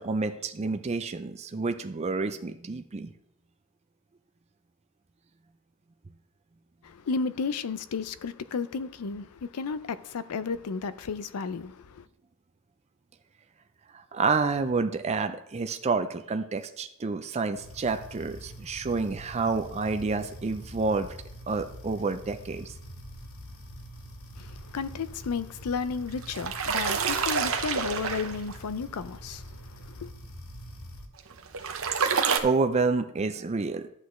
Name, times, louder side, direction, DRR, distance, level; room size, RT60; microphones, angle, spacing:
voice 1, 0.0-3.1 14.1-21.1 21.5-22.7 32.4-33.9, right 4 dB, 30° right, 0.4 m, -29 dB
voice 2, 6.8-12.0 24.4-30.1, left 5 dB, 85° left, 0.5 m, -33 dB
sound 1, 17.5-31.1, equal, 65° left, 1.2 m, -45 dB
sound 2, 26.1-28.6 31.2-32.4, right 6 dB, 65° right, 0.8 m, -28 dB
11.5 x 8.1 x 3.1 m
head